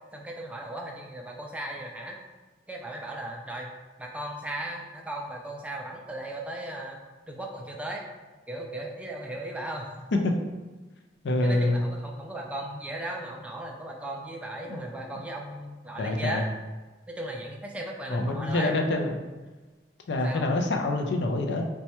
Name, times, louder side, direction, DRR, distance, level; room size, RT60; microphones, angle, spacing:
voice 1, 0.1-2.2 2.7-3.7 4.0-7.0 7.3-8.0 8.5-9.9 11.4-16.4 17.1-18.7 20.2-20.5, right 1 dB, 5° right, 0 dB, 0.3 m, -36 dB
voice 2, 11.2-11.9 14.6-15.2 16.0-16.4 18.1-19.2 20.1-21.6, left 2 dB, 75° left, 3 dB, 0.4 m, -26 dB
4.1 x 2.2 x 2.9 m, 1.2 s
head